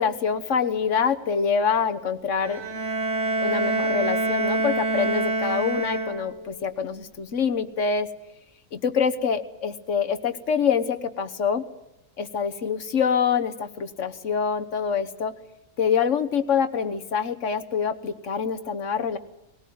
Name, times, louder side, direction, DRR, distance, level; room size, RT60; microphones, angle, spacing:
voice 1, 0.0-2.6 3.4-8.1 8.7-11.6 12.2-15.3 15.8-19.2, left 6 dB, 55° left, 10 dB, 1.5 m, -25 dB
Bowed string instrument, 2.4-6.5, right 2 dB, 45° right, 3.4 m, -26 dB
20.0 x 19.0 x 9.4 m, 0.90 s
omnidirectional pair, 1.5 m